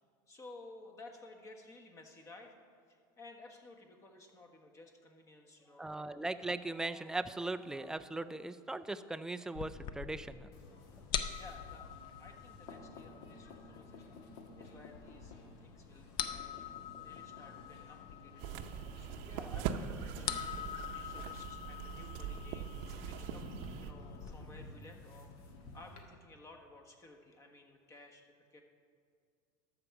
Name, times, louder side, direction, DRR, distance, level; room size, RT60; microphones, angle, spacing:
voice 1, 0.3-2.6 2.9-6.2 10.6-11.9 12.2-16.6 17.0-18.4 19.0-23.5 23.8-28.6, left 2 dB, 25° left, 4 dB, 1.3 m, -56 dB
voice 2, 5.7-10.5, right 2 dB, 5° right, 12 dB, 0.3 m, -39 dB
sound 1, 9.5-24.3, left 8 dB, 45° left, 0.6 m, -45 dB
sound 2, 10.5-26.0, left 2 dB, 60° left, 1.5 m, -54 dB
sound 3, 18.4-23.9, right 8 dB, 65° right, 0.7 m, -42 dB
12.5 x 4.8 x 6.9 m, 2.2 s
supercardioid pair, 130°, 11 cm